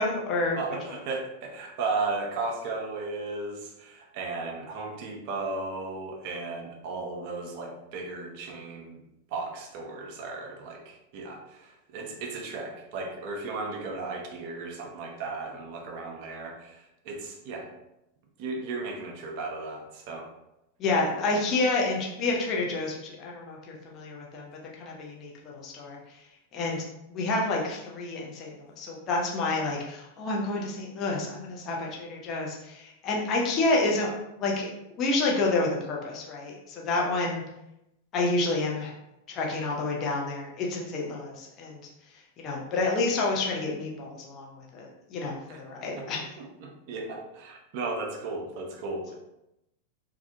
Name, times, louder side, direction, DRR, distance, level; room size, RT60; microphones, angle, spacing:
voice 1, 0.0-0.6 20.8-26.0 26.5-26.8 27.1-34.1 34.4-34.7 35.0-37.4 38.1-38.9 39.3-41.8 42.4-46.2, left 2 dB, 35° left, -2 dB, 0.6 m, -29 dB
voice 2, 0.6-9.0 9.3-17.7 18.4-20.3 45.5-45.6 46.0-49.1, right 3 dB, 45° right, 1 dB, 0.4 m, -35 dB
2.4 x 2.1 x 2.7 m, 0.87 s
figure-of-eight pair, 90°, 0 cm